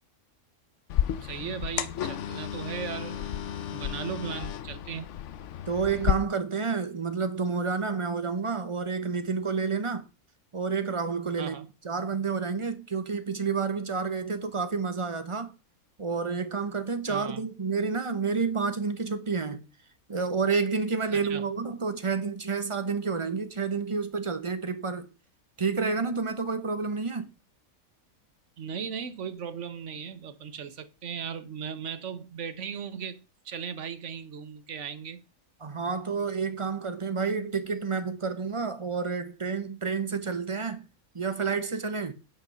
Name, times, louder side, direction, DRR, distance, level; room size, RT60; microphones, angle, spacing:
sound 1, 0.9-6.1, left 10 dB, 65° left, 0.9 m, -32 dB
voice 1, 1.2-3.3 3.5-5.1 11.4-11.7 17.1-17.4 21.1-21.4 28.6-33.2 33.4-35.2, right 7 dB, 55° right, 1.3 m, -37 dB
voice 2, 5.7-10.1 10.5-11.6 11.8-15.5 16.0-19.6 20.1-25.1 25.6-27.3 35.6-40.9 41.1-42.1, right 5 dB, 25° right, 0.9 m, -29 dB
9.3 x 6.2 x 5.6 m
omnidirectional pair, 1.5 m